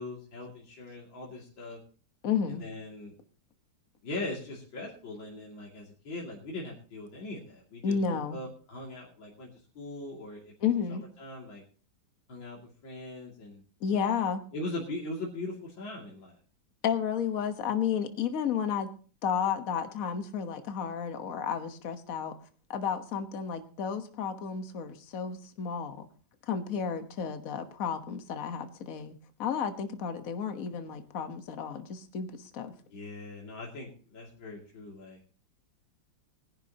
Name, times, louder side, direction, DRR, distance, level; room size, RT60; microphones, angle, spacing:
voice 1, 0.0-1.8 2.5-3.1 4.0-9.5 9.7-10.5 10.9-11.6 12.3-13.6 14.5-16.3 32.9-35.2, left 2 dB, 70° left, -4 dB, 3.3 m, -40 dB
voice 2, 2.2-2.6 7.8-8.4 10.6-11.0 13.8-14.4 16.8-18.9 19.2-22.3 22.7-26.1 26.5-32.7, left 7 dB, 45° left, 7 dB, 1.5 m, -32 dB
20.5 x 11.0 x 2.9 m, 0.39 s
omnidirectional pair, 2.2 m